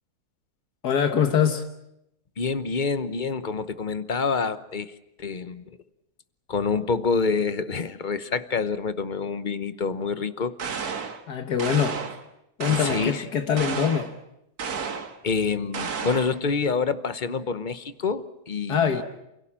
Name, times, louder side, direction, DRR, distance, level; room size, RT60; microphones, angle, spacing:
voice 1, 0.8-1.6 11.3-12.0 12.6-14.1 18.7-19.0, left 8 dB, 80° left, 7 dB, 1.8 m, -23 dB
voice 2, 2.4-4.9 5.2-5.8 6.5-10.6 10.8-10.9 12.7-13.3 15.2-19.0, left 5 dB, 35° left, 13 dB, 0.9 m, -27 dB
sound 1, 10.6-11.2 11.6-12.2 12.6-13.2 13.6-14.1 14.6-15.2 15.7-16.4, right 5 dB, 75° right, 2.0 m, -32 dB
28.5 x 17.0 x 8.8 m, 0.84 s
omnidirectional pair, 1.7 m